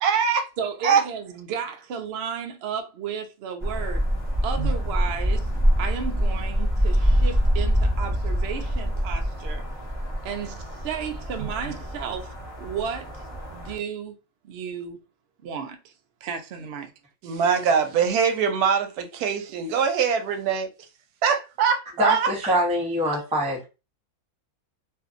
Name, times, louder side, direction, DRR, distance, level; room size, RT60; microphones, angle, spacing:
voice 1, 0.0-0.5 0.8-1.0 4.6-4.7 17.2-20.7 21.2-22.3, right 6 dB, 90° right, 1.1 m, -22 dB
voice 2, 0.6-4.1 4.4-5.5 5.8-9.6 10.2-14.2 14.4-15.0 15.4-15.9 16.2-16.9, right 6 dB, 65° right, 0.6 m, -33 dB
sound 1, 3.6-13.8, equal, 15° left, 0.9 m, -25 dB
voice 3, 22.0-23.6, equal, 10° right, 0.4 m, -24 dB
2.6 x 2.5 x 2.4 m
omnidirectional pair, 1.6 m